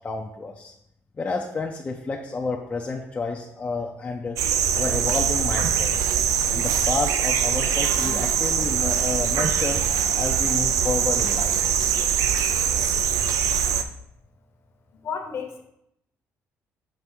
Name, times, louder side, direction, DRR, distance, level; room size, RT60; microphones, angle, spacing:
voice 1, 0.0-0.7 1.2-4.4 4.7-6.1 6.5-9.8 10.2-11.5, left 4 dB, 25° left, 1 dB, 0.5 m, -30 dB
sound 1, 4.4-13.8, right 8 dB, 80° right, 0.4 m, -23 dB
voice 2, 15.0-15.6, left 6 dB, 50° left, 4 dB, 1.0 m, -31 dB
5.9 x 3.2 x 5.3 m, 0.78 s
cardioid pair, 130°, 6 cm